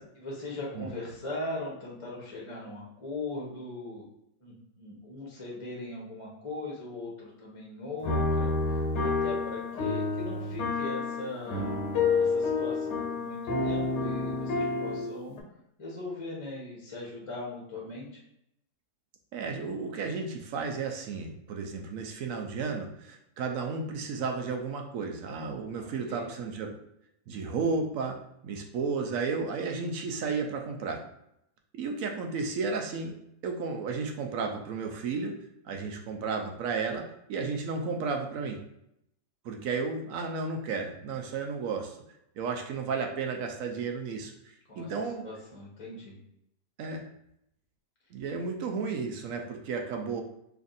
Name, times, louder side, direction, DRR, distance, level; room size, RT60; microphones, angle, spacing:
voice 1, 0.2-4.0 4.4-11.7 12.2-15.4 15.8-18.2 25.8-26.3 44.7-46.2, left 2 dB, 30° left, -3 dB, 0.7 m, -40 dB
sound 1, 8.0-15.4, left 3 dB, 85° left, 1.5 m, -29 dB
voice 2, 19.3-26.7 27.3-28.2 28.4-31.0 31.7-33.2 33.4-35.4 35.6-38.6 39.4-42.0 42.4-44.3 44.8-45.3 46.8-47.0 48.1-50.2, right 4 dB, 70° right, 3 dB, 0.8 m, -33 dB
3.4 x 2.5 x 3.9 m, 0.77 s
omnidirectional pair, 1.8 m